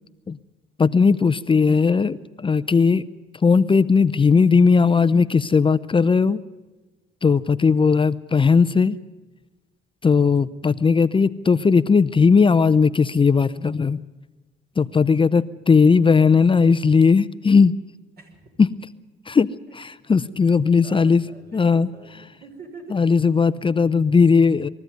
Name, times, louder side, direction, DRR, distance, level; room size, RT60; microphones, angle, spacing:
voice 1, 0.8-3.1 3.4-6.4 7.2-9.0 10.0-14.0 14.8-17.7 18.6-18.7 19.3-19.5 19.7-21.2 21.5-21.9 22.9-24.7, left 5 dB, 25° left, 14 dB, 0.6 m, -17 dB
voice 2, 20.8-23.0, right 3 dB, 50° right, 2 dB, 5.7 m, -46 dB
22.0 x 14.0 x 9.4 m, 1.2 s
cardioid pair, 90°, 20 cm